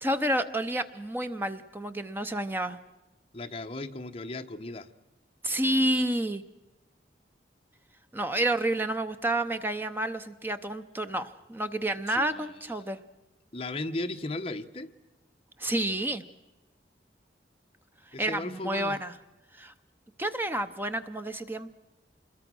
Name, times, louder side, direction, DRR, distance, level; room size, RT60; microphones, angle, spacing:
voice 1, 0.0-2.8 5.4-6.4 8.1-13.0 15.6-16.2 18.2-19.1 19.5-19.7 20.2-21.7, right 1 dB, 10° right, 9 dB, 0.7 m, -29 dB
voice 2, 3.3-4.9 12.1-12.5 13.5-14.9 18.1-19.0, left 2 dB, 35° left, 7 dB, 1.1 m, -36 dB
27.0 x 22.0 x 6.2 m, 1.1 s
head